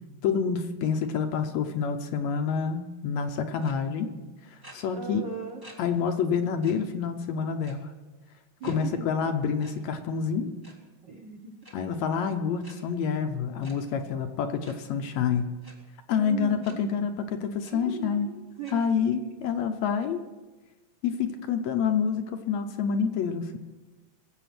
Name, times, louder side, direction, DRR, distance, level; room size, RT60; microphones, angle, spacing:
voice 1, 0.2-4.1 4.5-5.2 5.8-7.9 8.6-10.5 11.7-15.5 16.1-18.3 18.7-20.2 21.0-23.6, left 6 dB, 70° left, 6 dB, 1.9 m, -28 dB
sound 1, 3.6-3.7 4.6-4.7 5.6-5.7 6.1-6.2 6.6-6.7 7.6-8.0 8.6-8.7 9.6-9.7 10.5-10.7 11.6-11.7 12.6-12.7 13.6-13.7 14.6-14.7 15.6-15.7 16.6-16.7 17.2-17.3 17.6-17.7 18.6-18.7, equal, 10° right, 1.7 m, -49 dB
voice 2, 4.9-5.6 8.6-9.0 11.0-11.5 16.1-16.9 17.7-19.0, right 6 dB, 55° right, 1 dB, 1.2 m, -38 dB
22.0 x 7.9 x 5.9 m, 1.2 s
omnidirectional pair, 3.5 m